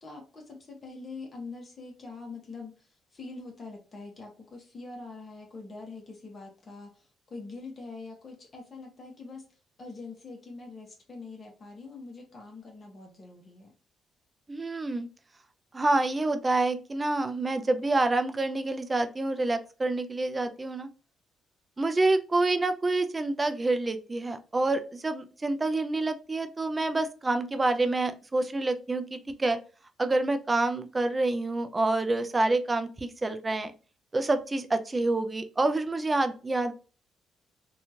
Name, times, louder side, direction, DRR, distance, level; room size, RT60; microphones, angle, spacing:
voice 1, 0.0-9.4 9.8-13.7, left 3 dB, 40° left, 1 dB, 0.9 m, -44 dB
voice 2, 14.5-15.1 15.7-20.9 21.8-29.6 30.0-33.7 34.1-36.7, right 2 dB, 25° right, 8 dB, 0.4 m, -27 dB
2.8 x 2.3 x 2.7 m, 0.35 s
cardioid pair, 90°, 0 cm